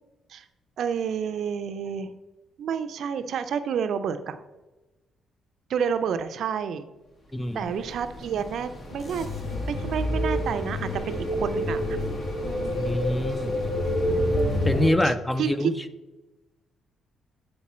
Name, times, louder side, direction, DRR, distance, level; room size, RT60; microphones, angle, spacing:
voice 1, 0.8-2.1 2.6-4.4 5.7-6.9 7.5-11.8 12.4-12.9 15.0-15.1 15.4-15.7, right 7 dB, 70° right, 10 dB, 0.5 m, -29 dB
voice 2, 7.3-7.7 12.7-13.7 14.7-15.8, left 1 dB, 10° left, 11 dB, 0.5 m, -26 dB
sound 1, 7.6-14.9, left 1 dB, 45° left, 1.2 m, -28 dB
8.5 x 4.5 x 4.2 m, 1.1 s
cardioid pair, 90°, 0 cm